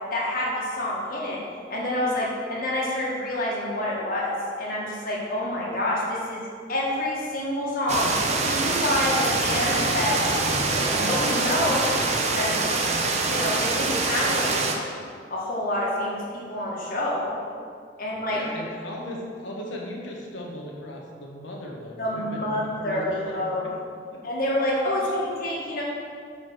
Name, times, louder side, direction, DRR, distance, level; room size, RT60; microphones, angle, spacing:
voice 1, 0.1-1.4 1.7-4.3 4.6-6.4 6.7-10.2 10.7-11.9 12.1-12.6 13.3-14.5 15.3-17.4 18.0-18.4 22.0-23.7 24.2-25.8, left 1 dB, 50° left, -5 dB, 1.7 m, -27 dB
sound 1, 7.9-14.8, right 3 dB, 35° right, 0.6 m, -24 dB
voice 2, 18.0-23.7 24.1-24.2 25.0-25.2, left 1 dB, 80° left, -1 dB, 1.3 m, -37 dB
5.8 x 5.0 x 6.0 m, 2.2 s
head